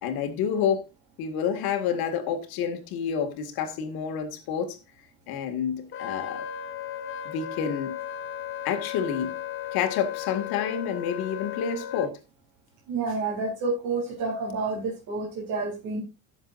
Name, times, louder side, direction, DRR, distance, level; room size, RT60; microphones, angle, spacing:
voice 1, 0.0-0.9 1.2-4.8 5.3-6.4 7.3-8.0 8.6-9.4 9.7-12.2, left 7 dB, 65° left, 2.3 m, -29 dB
Wind instrument woodwind instrument, 5.9-12.1, left 10 dB, 30° left, 1.0 m, -35 dB
voice 2, 12.9-16.0, right 3 dB, 50° right, 4.2 m, -29 dB
18.0 x 7.2 x 2.6 m
cardioid pair, 145°, 39 cm